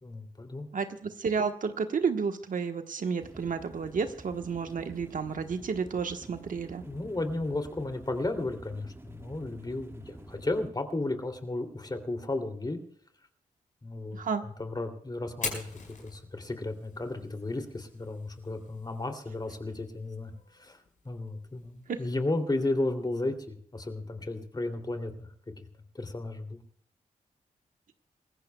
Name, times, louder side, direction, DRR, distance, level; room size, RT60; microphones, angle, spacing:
voice 1, 0.0-0.7 6.8-12.8 13.8-14.2 14.6-15.7 16.0-20.8 21.0-25.3 25.9-26.6, left 2 dB, 30° left, 6 dB, 2.9 m, -34 dB
voice 2, 0.7-6.8 14.1-14.4 21.9-22.0, right 5 dB, 65° right, 7 dB, 1.3 m, -31 dB
sound 1, 3.2-10.7, right 1 dB, 20° right, 2.2 m, -49 dB
Fire, 15.3-23.3, left 4 dB, 60° left, 5.3 m, -45 dB
27.5 x 15.0 x 2.3 m, 0.62 s
cardioid pair, 60°, 15 cm